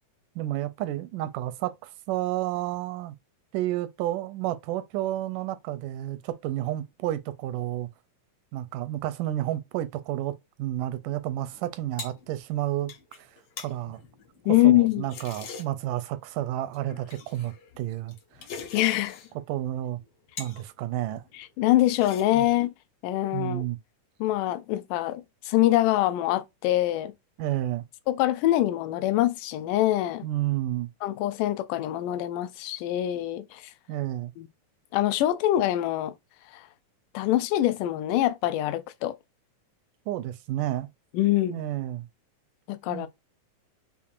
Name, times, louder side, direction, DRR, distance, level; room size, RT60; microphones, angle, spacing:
voice 1, 0.4-3.2 3.5-7.9 8.5-12.9 13.2-13.3 13.6-14.0 14.5-18.5 19.5-20.0 20.4-21.2 22.3-22.5 23.3-23.8 27.4-27.8 30.2-30.9 33.9-34.3 40.1-40.9 41.5-42.1 42.9-43.1, right 14 dB, 85° right, 2.1 m, -31 dB
sound 1, 11.5-16.0 16.7-19.4 19.7-20.7 21.0-21.5 21.8-22.6, left 5 dB, 70° left, 1.4 m, -44 dB
voice 2, 14.5-15.0 18.7-19.2 21.3-22.7 23.0-23.6 24.2-27.1 28.1-30.3 31.0-33.6 34.4-34.5 34.9-36.1 36.5-36.7 37.1-39.2 41.1-41.6 42.7-43.1, left 14 dB, 85° left, 2.1 m, -24 dB
6.9 x 2.4 x 2.5 m
omnidirectional pair, 3.7 m